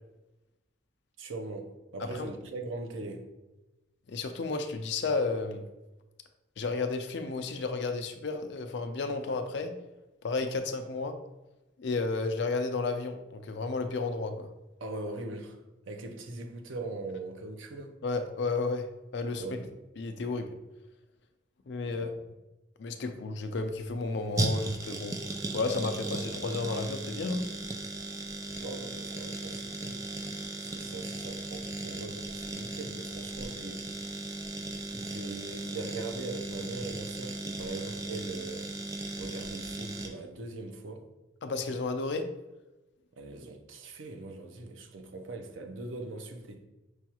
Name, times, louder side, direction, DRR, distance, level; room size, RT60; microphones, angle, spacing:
voice 1, 1.2-3.3 14.8-15.6 15.9-17.9 19.3-19.7 21.9-22.1 28.6-30.0 30.6-33.8 35.0-38.7 39.2-41.0 43.2-46.6, right 2 dB, 90° right, 0.6 m, -40 dB
voice 2, 4.1-5.6 6.6-9.7 10.2-11.2 11.8-14.5 18.0-18.9 19.1-19.6 20.0-20.5 21.7-22.1 22.8-25.1 25.5-27.4 41.4-42.3, left 3 dB, 65° left, 0.4 m, -32 dB
sound 1, 23.5-40.1, right 2 dB, 15° right, 0.3 m, -37 dB
6.2 x 2.3 x 2.9 m
head